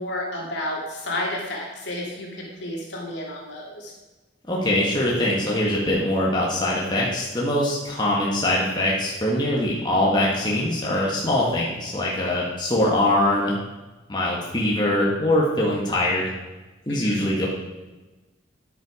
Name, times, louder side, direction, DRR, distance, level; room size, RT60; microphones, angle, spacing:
voice 1, 0.0-3.9 16.9-17.3, left 1 dB, 65° left, -2 dB, 2.9 m, -31 dB
voice 2, 4.5-13.5 14.1-16.3 16.9-17.5, left 1 dB, 25° left, -4 dB, 1.7 m, -22 dB
10.5 x 9.0 x 5.0 m, 1.1 s
head